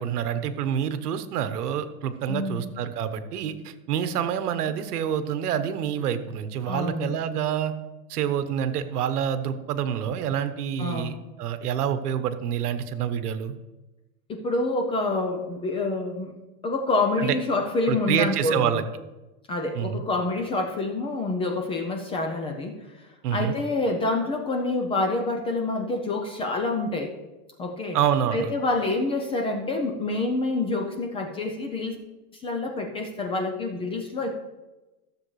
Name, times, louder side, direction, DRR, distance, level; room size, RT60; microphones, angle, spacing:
voice 1, 0.0-7.7 8.1-13.5 17.2-17.3 17.9-18.8 19.7-20.0 23.2-23.5 27.9-28.5, right 9 dB, 75° right, 10 dB, 1.2 m, -27 dB
voice 2, 2.3-2.6 6.7-7.1 10.8-11.1 14.3-16.3 16.6-18.8 19.5-27.1 27.6-28.0 28.3-32.0 32.3-34.3, left 2 dB, 10° left, 3 dB, 0.5 m, -27 dB
14.5 x 7.2 x 3.2 m, 1.1 s
supercardioid pair, 145°, 46 cm